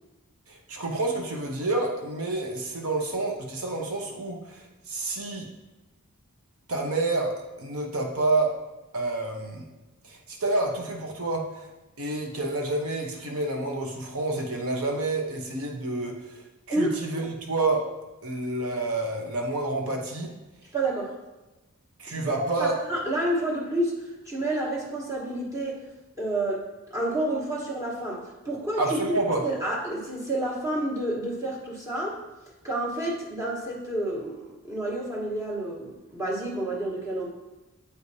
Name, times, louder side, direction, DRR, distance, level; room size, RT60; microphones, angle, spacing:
voice 1, 0.5-5.5 6.7-8.5 8.9-9.7 10.0-11.7 12.0-17.9 18.2-20.3 22.0-22.7 28.8-29.4, right 2 dB, 80° right, 1 dB, 1.0 m, -29 dB
voice 2, 20.7-21.2 22.1-25.8 26.2-26.6 26.9-32.2 32.6-37.3, right 1 dB, 15° right, -4 dB, 1.2 m, -29 dB
8.2 x 4.8 x 2.8 m, 1.1 s
head